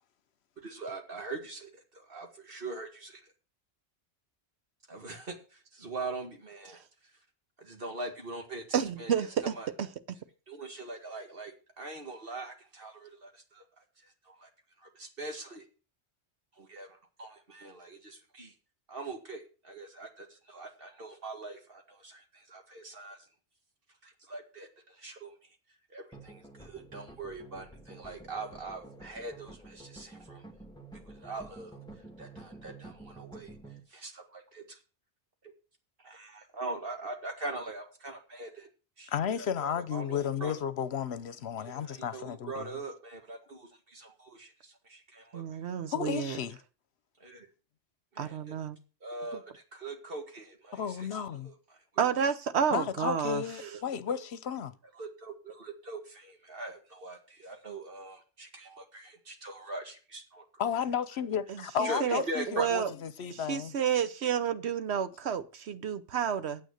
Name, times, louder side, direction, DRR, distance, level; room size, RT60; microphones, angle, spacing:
voice 1, 0.6-3.3 4.9-7.2 7.6-9.7 10.5-14.5 14.8-15.7 16.5-18.5 18.9-23.3 24.0-25.6 25.9-30.4 31.1-34.8 35.4-35.5 36.0-38.7 39.0-40.5 41.6-45.8 47.2-47.5 48.1-48.5 49.0-51.2 51.4-51.8 53.5-53.8 54.1-54.2 54.9-60.5 61.8-62.7, right 2 dB, 55° right, 2.1 m, -42 dB
voice 2, 8.7-9.9 45.3-46.4 48.2-48.8 52.0-53.4 61.8-62.2 62.6-62.9 63.5-66.6, right 8 dB, 75° right, 1.0 m, -30 dB
sound 1, 26.1-33.8, right 3 dB, 5° left, 1.4 m, -50 dB
voice 3, 39.1-42.8 45.9-46.6 50.7-51.5 52.7-54.7 60.6-63.7, left 8 dB, 70° left, 1.0 m, -33 dB
9.2 x 7.9 x 6.4 m
omnidirectional pair, 1.1 m